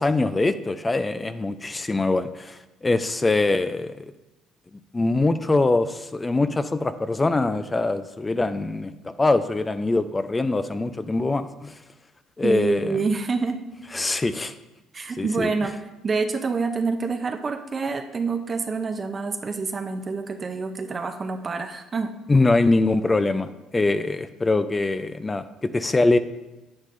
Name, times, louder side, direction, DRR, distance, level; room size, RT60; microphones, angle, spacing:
voice 1, 0.0-4.1 4.9-8.9 9.2-11.7 12.4-13.0 13.9-14.5 15.2-15.5 22.3-26.2, left 2 dB, 20° left, 11 dB, 0.5 m, -23 dB
voice 2, 12.4-13.7 14.9-15.8 16.0-22.2, right 4 dB, 35° right, 6 dB, 0.6 m, -27 dB
9.5 x 8.3 x 2.6 m, 1.0 s
supercardioid pair, 70°, 0 cm